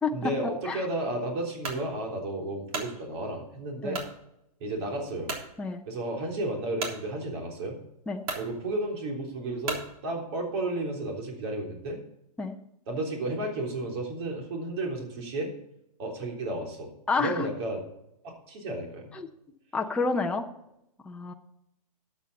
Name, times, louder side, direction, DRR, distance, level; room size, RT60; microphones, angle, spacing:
voice 1, 0.1-4.0 4.6-5.3 5.9-7.8 8.3-12.0 12.9-15.5 16.0-16.9 17.2-17.8 18.2-19.2, right 1 dB, 40° right, 0 dB, 3.6 m, -33 dB
sound 1, 1.6-1.8 2.4-2.9 3.9-4.1 4.7-4.8 5.2-5.5 6.8-7.0 7.8-7.9 8.2-8.5 9.6-9.9, right 4 dB, 60° right, 3.5 m, -34 dB
voice 2, 17.1-17.5 19.1-19.3 19.7-20.4 21.1-21.3, left 4 dB, 5° left, 2 dB, 0.7 m, -28 dB
13.0 x 8.6 x 4.1 m, 0.81 s
hypercardioid pair, 150°, 20 cm